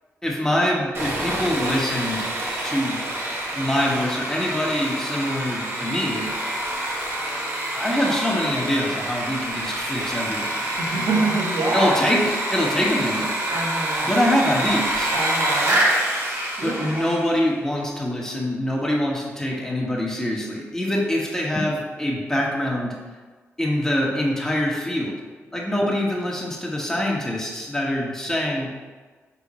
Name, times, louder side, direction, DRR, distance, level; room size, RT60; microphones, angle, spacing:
voice 1, 0.2-2.2 2.6-3.0 3.5-6.3 7.7-10.6 11.7-13.3 14.0-15.1 16.6-22.9 23.6-25.1 25.5-28.7, left 1 dB, 10° left, -3 dB, 1.4 m, -24 dB
Sawing, 0.9-17.4, right 1 dB, 55° right, 1.3 m, -27 dB
voice 2, 10.8-12.1 13.5-14.2 15.1-15.8 16.6-17.1, right 2 dB, 85° right, -2 dB, 1.2 m, -25 dB
6.2 x 3.8 x 4.2 m, 1.4 s
cardioid pair, 85°, 5 cm